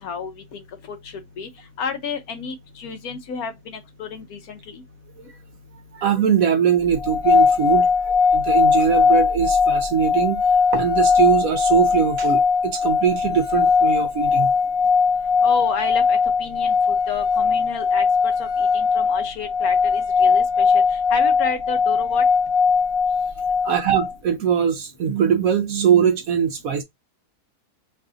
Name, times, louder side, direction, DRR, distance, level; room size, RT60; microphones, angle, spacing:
voice 1, 0.0-1.5 1.8-4.8 15.4-22.2, left 5 dB, 65° left, 1.1 m, -32 dB
voice 2, 5.9-10.4 10.7-14.5 23.6-26.8, right 8 dB, 65° right, 0.9 m, -21 dB
sound 1, 7.0-24.1, left 5 dB, 85° left, 0.5 m, -19 dB
3.2 x 2.4 x 3.6 m
omnidirectional pair, 1.8 m